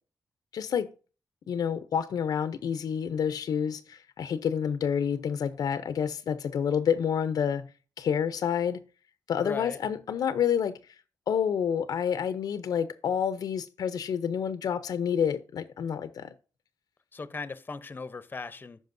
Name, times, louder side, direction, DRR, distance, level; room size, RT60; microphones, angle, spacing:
voice 1, 0.5-0.9 1.5-7.6 8.0-8.8 9.3-10.7 11.3-16.3, left 8 dB, 75° left, 0.6 m, -28 dB
voice 2, 9.4-9.8 17.1-18.8, left 4 dB, 30° left, 0.7 m, -38 dB
14.5 x 5.1 x 2.6 m
cardioid pair, 95°, 7 cm